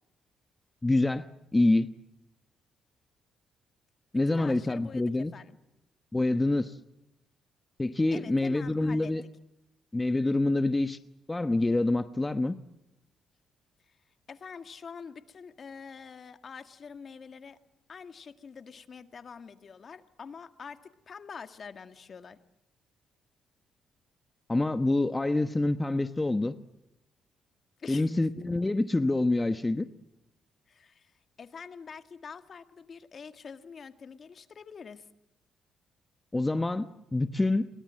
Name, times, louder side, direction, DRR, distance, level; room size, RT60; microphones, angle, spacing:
voice 1, 0.8-1.9 4.1-5.3 6.1-6.8 7.8-9.2 9.9-11.0 11.3-12.6 24.5-26.6 27.9-29.9 36.3-36.9 37.1-37.7, left 2 dB, 15° left, 10 dB, 1.1 m, -26 dB
voice 2, 4.3-5.6 8.1-9.1 13.9-14.0 14.3-17.6 17.9-20.8 21.1-22.4 27.8-28.1 30.7-31.1 31.4-35.1, left 6 dB, 45° left, 9 dB, 1.9 m, -46 dB
29.0 x 23.0 x 7.6 m, 0.90 s
cardioid pair, 90°, 0 cm